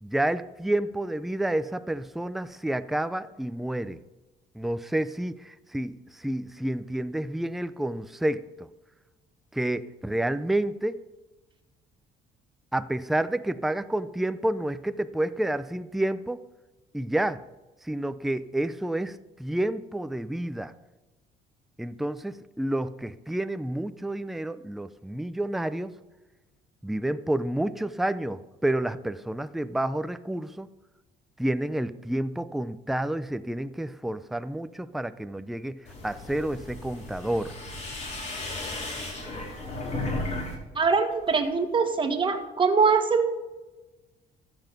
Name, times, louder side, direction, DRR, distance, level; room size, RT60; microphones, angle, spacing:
voice 1, 0.0-4.0 4.6-8.7 9.5-11.0 12.7-16.4 16.9-17.4 17.8-20.7 21.8-25.9 26.8-30.7 31.4-35.8 36.0-37.5, right 1 dB, ahead, 12 dB, 0.4 m, -29 dB
sound 1, 35.9-40.5 40.8-41.5, left 2 dB, 40° left, 4.0 m, -35 dB
voice 2, 40.7-43.3, right 5 dB, 30° right, 5 dB, 1.6 m, -23 dB
13.5 x 7.9 x 5.2 m, 1.1 s
cardioid pair, 110°, 17 cm